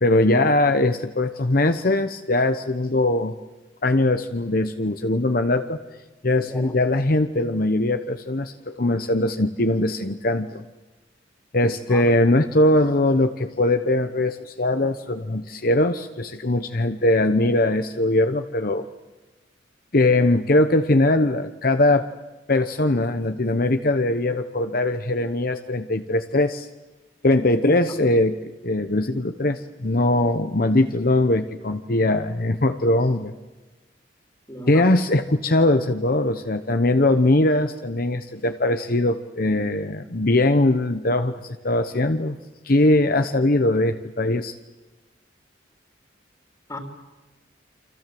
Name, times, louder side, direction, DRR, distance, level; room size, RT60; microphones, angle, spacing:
voice 1, 0.0-3.3 3.8-5.8 6.2-10.6 11.5-18.9 19.9-22.1 22.5-26.7 27.2-28.4 28.6-33.3 34.7-42.4 42.6-44.6, left 2 dB, 50° left, 8 dB, 1.0 m, -21 dB
voice 2, 27.6-28.0 34.5-34.9 46.7-46.8, equal, 20° left, 3 dB, 3.2 m, -35 dB
28.5 x 26.5 x 7.8 m, 1.1 s
head